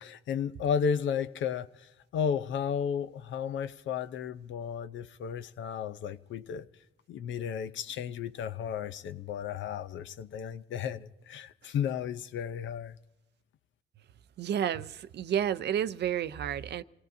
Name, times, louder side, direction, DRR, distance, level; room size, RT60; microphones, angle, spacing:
voice 1, 0.0-6.7 7.1-13.0, left 7 dB, 70° left, 0.7 m, -33 dB
voice 2, 14.4-16.8, right 9 dB, 60° right, 0.5 m, -31 dB
26.5 x 17.5 x 2.7 m
cardioid pair, 90°, 20 cm